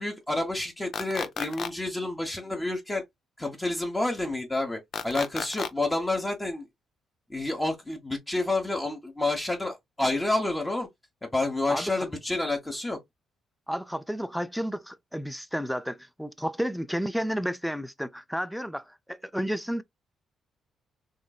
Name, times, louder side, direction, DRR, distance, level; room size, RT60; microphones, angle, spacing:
voice 1, 0.0-3.0 3.4-6.7 7.3-10.9 11.2-13.0, left 2 dB, 15° left, 1.0 m, -29 dB
sound 1, 0.9-1.7 4.9-5.7, left 7 dB, 55° left, 0.5 m, -33 dB
voice 2, 11.7-12.1 13.7-19.8, equal, ahead, 0.4 m, -31 dB
3.6 x 2.6 x 2.3 m
cardioid pair, 90°, 0 cm